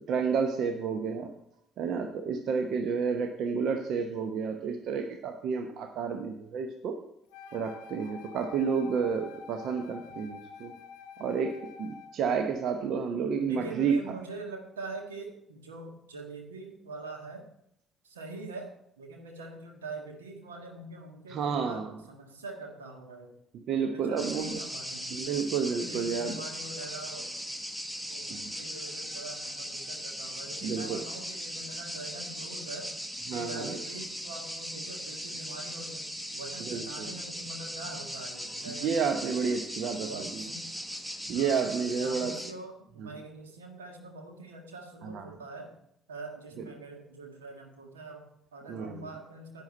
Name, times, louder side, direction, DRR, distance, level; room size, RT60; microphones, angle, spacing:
voice 1, 0.0-1.3 1.8-7.0 7.5-10.7 11.2-13.9 21.3-21.9 23.7-24.6 25.1-26.3 28.3-28.6 30.6-31.0 33.3-33.8 36.6-37.1 38.7-40.4 41.3-42.4 43.0-43.2 45.1-45.3 48.7-49.0, right 6 dB, 60° right, 6 dB, 0.8 m, -30 dB
Wind instrument woodwind instrument, 7.3-12.2, left 6 dB, 70° left, 0.7 m, -47 dB
voice 2, 13.4-17.5 18.0-23.3 23.8-25.4 25.9-27.3 28.1-28.3 28.6-32.9 33.3-39.2 40.1-40.6 41.3-41.5 41.8-45.7 46.1-49.6, right 2 dB, 85° right, 2 dB, 1.6 m, -44 dB
sound 1, 24.2-42.5, equal, 10° right, 1.3 m, -39 dB
10.5 x 9.1 x 4.3 m, 0.75 s
figure-of-eight pair, 50°, 0 cm